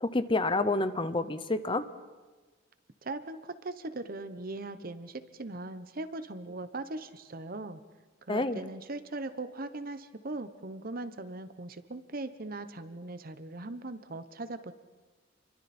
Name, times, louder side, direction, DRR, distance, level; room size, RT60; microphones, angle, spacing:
voice 1, 0.0-1.9 8.3-8.6, left 2 dB, 25° left, 12 dB, 0.8 m, -28 dB
voice 2, 3.0-7.8 8.2-14.7, right 2 dB, 50° right, 11 dB, 1.0 m, -39 dB
29.5 x 23.5 x 4.4 m, 1.3 s
head